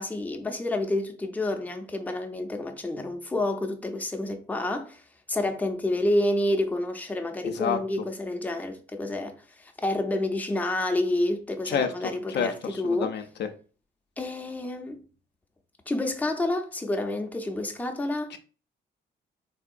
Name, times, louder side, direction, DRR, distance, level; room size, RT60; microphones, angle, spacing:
voice 1, 0.0-5.0 5.3-13.1 14.2-15.0 15.9-18.3, left 1 dB, 10° left, 0.5 m, -29 dB
voice 2, 7.4-7.8 11.7-11.9 12.3-13.5 18.3-18.4, left 6 dB, 60° left, 0.4 m, -28 dB
3.6 x 2.7 x 2.4 m
cardioid pair, 90°, 20 cm